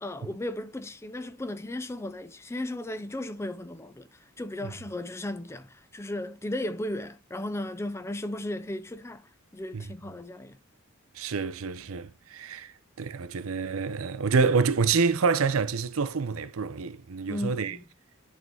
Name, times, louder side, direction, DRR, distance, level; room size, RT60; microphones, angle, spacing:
voice 1, 0.0-10.6 17.3-17.8, left 1 dB, 10° left, 0.4 m, -35 dB
voice 2, 11.2-12.7 13.0-17.8, right 5 dB, 80° right, 0.6 m, -27 dB
10.5 x 3.7 x 3.7 m
head